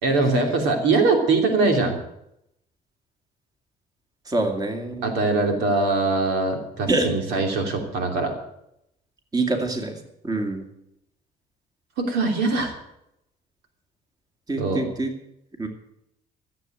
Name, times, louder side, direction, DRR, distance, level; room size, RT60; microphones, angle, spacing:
voice 1, 0.0-2.0 5.0-8.3 12.0-12.7 14.6-14.8, right 3 dB, 90° right, 3 dB, 3.0 m, -22 dB
voice 2, 4.3-5.1 6.9-7.2 9.3-10.0 10.2-10.7 14.5-15.1 15.6-15.7, right 2 dB, 20° right, 4 dB, 2.5 m, -25 dB
14.5 x 7.8 x 9.2 m, 0.80 s
cardioid pair, 110°, 17 cm